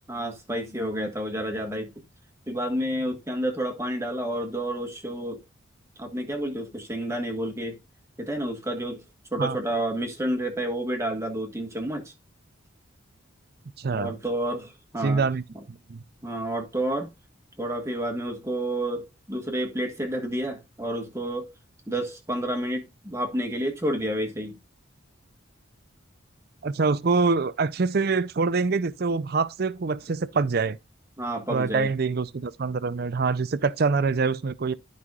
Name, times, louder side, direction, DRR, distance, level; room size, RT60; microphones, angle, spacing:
voice 1, 0.1-1.9 2.5-5.4 6.0-7.8 8.2-9.0 9.3-12.1 13.9-15.2 16.2-17.1 17.6-21.5 21.9-24.6 31.2-31.9, right 1 dB, 15° right, 1.5 m, -30 dB
voice 2, 13.8-14.1 15.0-15.4 15.7-16.0 26.6-30.8 31.5-34.7, right 4 dB, 50° right, 0.5 m, -25 dB
12.5 x 5.6 x 2.4 m
head